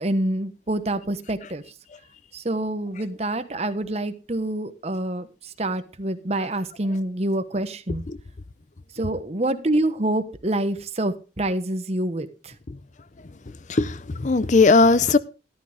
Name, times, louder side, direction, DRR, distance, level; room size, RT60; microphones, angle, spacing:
voice 1, 0.0-1.6 2.3-8.0 8.9-12.5, right 1 dB, 35° right, 10 dB, 1.1 m, -26 dB
voice 2, 13.7-15.2, left 3 dB, 40° left, 16 dB, 0.5 m, -18 dB
13.5 x 12.0 x 3.4 m, 0.32 s
head